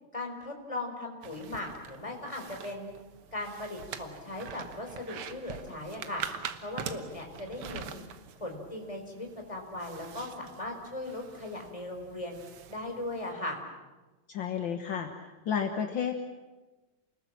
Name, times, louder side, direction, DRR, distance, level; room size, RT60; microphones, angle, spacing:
voice 1, 0.1-2.9 3.3-6.2 6.6-8.0 8.4-12.4 12.7-13.6, left 2 dB, 15° left, 2 dB, 4.3 m, -38 dB
sound 1, 1.2-13.3, right 8 dB, 90° right, 2.1 m, -44 dB
voice 2, 14.3-15.1 15.5-16.1, left 7 dB, 65° left, 5 dB, 2.0 m, -31 dB
29.0 x 20.5 x 7.5 m, 1.2 s
omnidirectional pair, 2.3 m